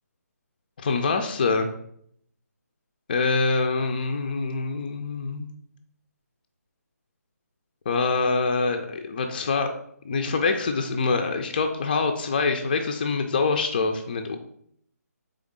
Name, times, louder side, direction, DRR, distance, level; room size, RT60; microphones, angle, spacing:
voice 1, 0.8-1.7 3.1-5.5 7.9-9.7 10.0-14.4, left 4 dB, 35° left, 5 dB, 0.3 m, -25 dB
3.8 x 3.4 x 3.6 m, 0.68 s
figure-of-eight pair, 145°, 9 cm